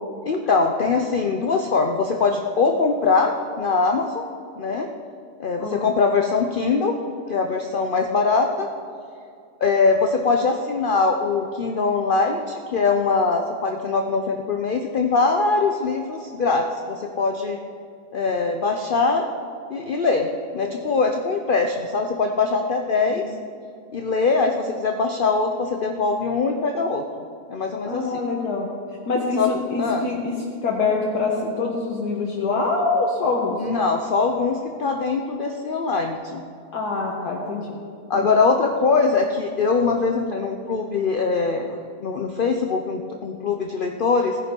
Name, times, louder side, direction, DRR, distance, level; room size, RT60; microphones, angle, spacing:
voice 1, 0.3-4.2 4.6-4.9 5.4-6.9 7.3-8.7 9.6-17.6 18.1-19.3 19.7-23.3 23.9-27.0 27.5-28.1 29.4-29.5 29.8-30.0 33.6-36.4 38.1-44.4, left 4 dB, 55° left, 4 dB, 0.6 m, -22 dB
voice 2, 5.6-5.9 23.1-23.2 27.9-28.7 29.1-30.3 30.6-33.7 36.7-37.8 38.1-38.3, left 3 dB, 75° left, -3 dB, 1.8 m, -25 dB
17.0 x 10.5 x 4.5 m, 2.3 s
omnidirectional pair, 1.8 m